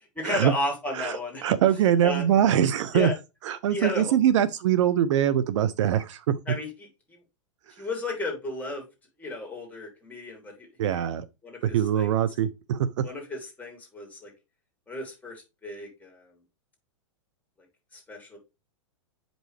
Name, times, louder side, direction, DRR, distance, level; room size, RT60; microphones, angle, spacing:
voice 1, 0.1-1.4 2.0-2.2 2.9-3.1 3.7-4.1 6.5-7.2 7.8-8.8 9.2-11.1 11.4-12.1 13.0-14.3 14.9-16.3 17.9-18.4, left 2 dB, 10° left, 3.0 m, -33 dB
voice 2, 1.4-3.1 3.5-6.2 10.8-11.3 11.6-13.0, right 10 dB, 65° right, 0.7 m, -23 dB
8.7 x 5.3 x 3.3 m
hypercardioid pair, 125°, 17 cm